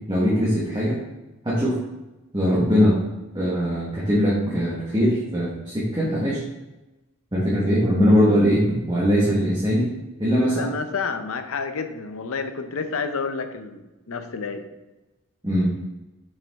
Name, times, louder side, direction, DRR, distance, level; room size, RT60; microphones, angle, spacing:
voice 1, 0.1-1.0 1.4-1.8 2.3-3.0 3.3-6.4 7.3-8.6 8.9-9.9 10.2-10.7 15.4-15.7, equal, 20° right, -7 dB, 1.3 m, -21 dB
voice 2, 10.4-14.6, left 5 dB, 80° left, 8 dB, 0.7 m, -29 dB
6.0 x 5.1 x 3.5 m, 1.0 s
head